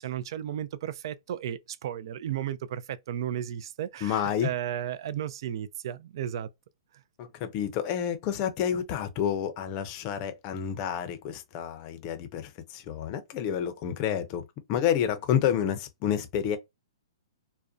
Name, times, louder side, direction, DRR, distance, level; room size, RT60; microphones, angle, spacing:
voice 1, 0.0-6.5, right 10 dB, 55° right, 0.3 m, -34 dB
voice 2, 4.0-4.5 7.2-14.4 14.7-16.6, left 9 dB, 35° left, 0.5 m, -29 dB
2.5 x 2.1 x 2.3 m
hypercardioid pair, 145°, 3 cm